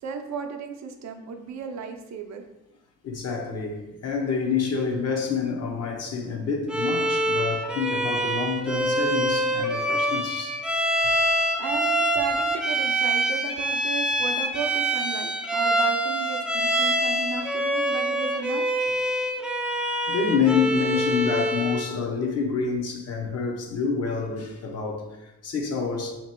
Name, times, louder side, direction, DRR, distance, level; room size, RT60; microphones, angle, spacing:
voice 1, 0.0-2.4 11.6-18.6, right 5 dB, 65° right, 0.6 m, -34 dB
voice 2, 3.0-10.6 20.1-26.1, left 5 dB, 55° left, 0.8 m, -27 dB
Bowed string instrument, 6.7-21.9, right 1 dB, 5° right, 0.4 m, -25 dB
3.0 x 2.9 x 4.3 m
cardioid pair, 90°, 30 cm